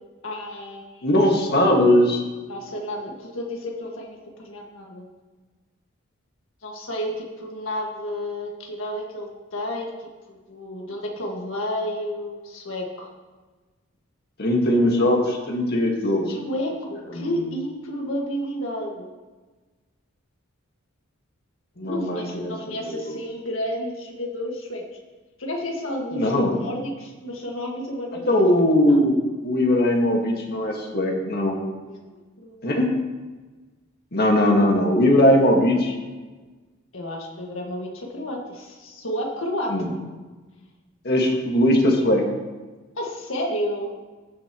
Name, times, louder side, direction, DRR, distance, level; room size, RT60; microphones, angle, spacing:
voice 1, 0.2-1.1 2.5-5.1 6.6-9.9 10.3-13.1 16.3-19.1 21.8-24.8 25.4-28.4 28.9-29.1 31.9-32.0 32.4-32.5 36.9-39.7 43.0-43.9, equal, 70° left, 0 dB, 1.8 m, -31 dB
voice 2, 1.0-2.2 14.4-16.4 17.1-17.3 21.8-22.5 22.8-23.1 26.1-26.5 28.3-29.2 29.4-31.6 32.6-32.9 34.1-35.9 39.7-39.9 41.0-42.2, left 1 dB, 50° left, 0 dB, 1.8 m, -20 dB
15.0 x 6.9 x 3.1 m, 1.3 s
head